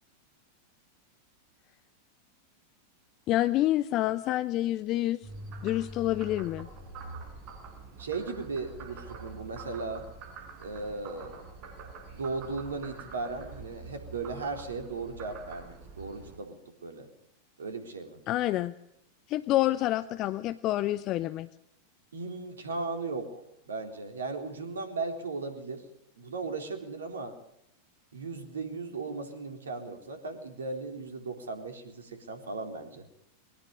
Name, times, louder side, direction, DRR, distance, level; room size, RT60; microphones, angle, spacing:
voice 1, 3.3-5.3 5.6-6.7 18.3-18.7 19.3-21.5, left 15 dB, 35° left, 16 dB, 0.7 m, -28 dB
Frog, 5.2-16.4, right 3 dB, 40° right, 6.1 m, -45 dB
voice 2, 8.0-10.1 10.6-11.4 12.1-17.1 17.6-18.2 22.1-23.4 23.7-25.9 26.2-27.4 28.1-33.1, right 3 dB, 70° right, 7 dB, 3.7 m, -37 dB
22.0 x 18.5 x 6.6 m, 0.79 s
figure-of-eight pair, 90°, 0 cm